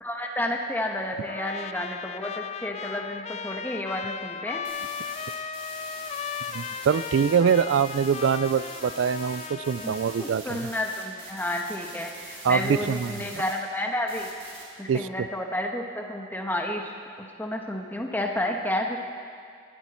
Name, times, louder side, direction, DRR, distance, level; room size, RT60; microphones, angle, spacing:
voice 1, 0.0-4.6 9.8-14.3 14.8-19.0, left 1 dB, 10° left, 1 dB, 1.2 m, -31 dB
Trumpet, 1.3-10.4, left 7 dB, 35° left, 0.3 m, -36 dB
sound 1, 4.6-13.5 14.1-14.6, right 2 dB, 30° right, 3.2 m, -43 dB
voice 2, 6.5-10.7 12.4-13.2 14.9-15.1, right 7 dB, 80° right, 16 dB, 0.3 m, -24 dB
19.5 x 13.0 x 4.3 m, 2.2 s
head